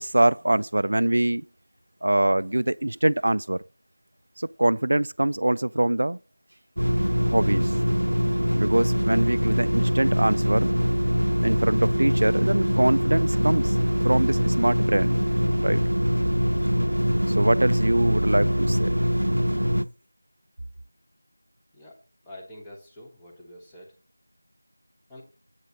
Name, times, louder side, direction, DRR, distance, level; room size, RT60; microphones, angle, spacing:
voice 1, 0.0-1.4 2.0-3.6 4.4-6.2 7.3-7.7 8.6-10.7 11.4-13.8 14.0-15.2 15.6-15.8 17.3-18.9, right 1 dB, 50° right, 0.4 m, -23 dB
sound 1, 6.8-19.9, equal, 90° right, 0.6 m, -23 dB
voice 2, 22.3-23.9 25.1-25.2, left 1 dB, 5° left, 1.1 m, -45 dB
8.2 x 6.8 x 4.0 m
figure-of-eight pair, 170°, 0 cm